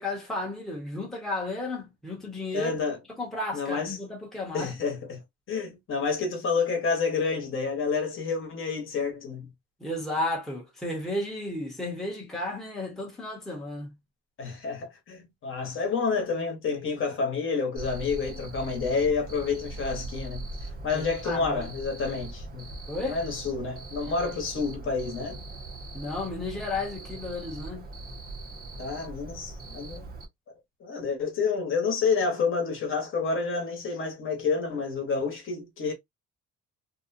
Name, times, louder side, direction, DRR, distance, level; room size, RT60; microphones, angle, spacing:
voice 1, 0.0-2.7 3.2-4.7 9.8-13.9 20.9-21.7 22.9-23.2 25.9-27.9, left 2 dB, ahead, 0.8 m, -33 dB
voice 2, 2.5-3.0 3.5-4.0 4.5-5.2 5.5-9.5 14.4-20.5 20.8-22.7 23.0-25.4 28.8-30.2 30.8-35.9, left 5 dB, 45° left, 1.0 m, -29 dB
Cricket, 17.8-30.3, right 2 dB, 30° right, 0.7 m, -40 dB
2.7 x 2.2 x 2.5 m
cardioid pair, 160°, 29 cm